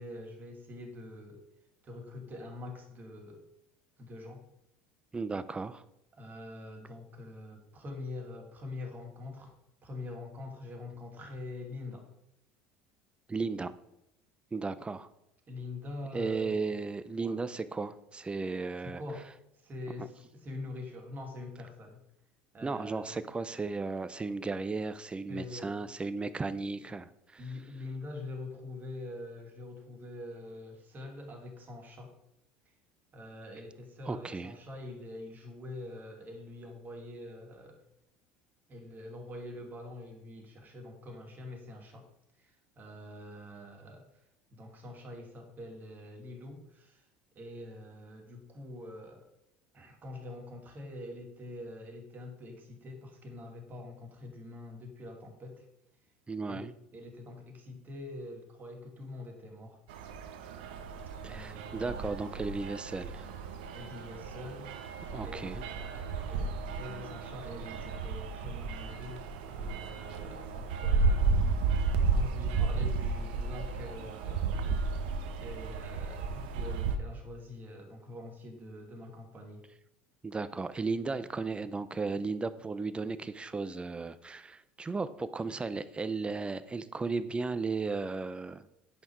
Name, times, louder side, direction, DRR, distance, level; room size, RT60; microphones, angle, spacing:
voice 1, 0.0-1.4 1.8-3.4 4.0-4.4 6.2-9.5 9.8-12.1 15.5-16.7 17.2-17.4 18.8-19.3 19.5-22.0 22.5-23.1 25.3-25.7 27.4-32.1 33.1-37.8 38.7-42.1 42.4-44.0 44.5-47.0 47.3-49.3 49.7-55.6 56.5-56.7 56.9-59.8 61.2-62.1 63.7-64.7 65.2-71.3 72.1-75.0 75.4-79.7, left 2 dB, 35° right, 3 dB, 2.4 m, -45 dB
voice 2, 5.1-5.8 13.3-13.7 14.5-15.1 16.1-19.0 20.0-20.1 22.6-27.4 34.1-34.6 56.3-56.7 61.2-63.3 65.1-65.6 80.2-88.7, right 4 dB, 20° right, 15 dB, 0.7 m, -35 dB
sound 1, 59.9-77.0, right 4 dB, 80° right, 0.9 m, -33 dB
10.5 x 5.7 x 4.7 m, 0.85 s
hypercardioid pair, 80°, 5 cm